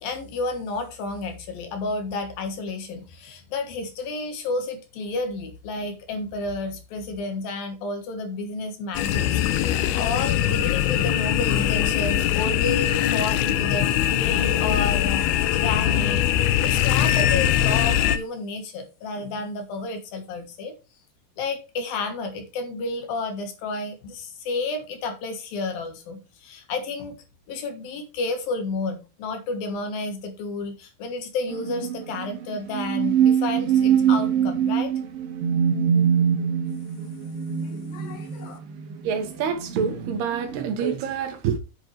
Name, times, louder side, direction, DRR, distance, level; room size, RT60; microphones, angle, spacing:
voice 1, 0.0-9.4 9.7-20.7 21.4-27.2 27.5-34.9 37.6-38.6, left 3 dB, 70° left, 3.1 m, -31 dB
sound 1, 8.9-18.2, left 11 dB, 85° left, 2.7 m, -22 dB
sound 2, 31.5-40.7, right 8 dB, 65° right, 3.3 m, -24 dB
voice 2, 39.0-41.6, right 7 dB, 80° right, 3.6 m, -27 dB
8.8 x 8.3 x 3.3 m
omnidirectional pair, 4.5 m